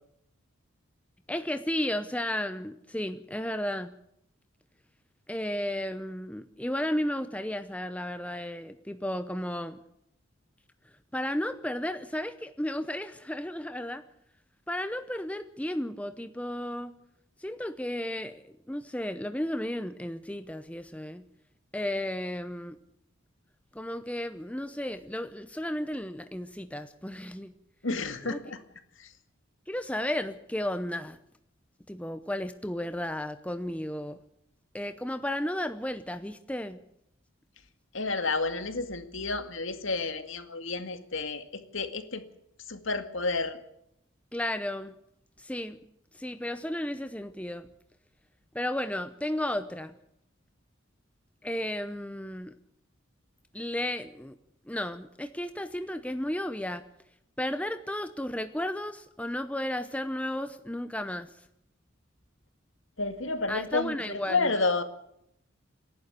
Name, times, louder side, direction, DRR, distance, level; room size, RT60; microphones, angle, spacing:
voice 1, 1.3-4.0 5.3-9.8 11.1-14.0 14.7-16.9 17.4-21.2 21.7-22.8 23.7-27.5 28.2-28.4 29.7-31.2 31.9-34.2 34.7-36.8 44.3-44.9 45.4-45.8 46.1-47.7 48.5-50.0 51.4-52.5 53.5-54.4 54.7-56.9 57.4-61.3 63.5-64.5, left 1 dB, 5° left, 10 dB, 0.7 m, -33 dB
voice 2, 27.8-28.6 29.0-29.1 37.9-41.4 41.7-42.2 42.7-43.6 63.0-64.8, left 3 dB, 65° left, 8 dB, 2.1 m, -30 dB
28.0 x 11.5 x 8.4 m, 0.77 s
head